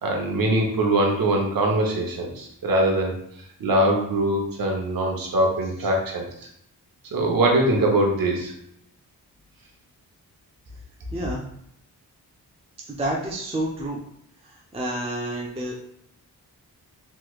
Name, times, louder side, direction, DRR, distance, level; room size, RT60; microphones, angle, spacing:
voice 1, 0.0-3.1 3.6-6.3 7.1-8.5, right 1 dB, 60° right, 1 dB, 0.8 m, -22 dB
voice 2, 11.1-11.4 12.9-14.0 14.4-15.7, right 1 dB, 15° right, -2 dB, 0.5 m, -29 dB
3.2 x 3.0 x 2.3 m, 0.73 s
cardioid pair, 80°, 38 cm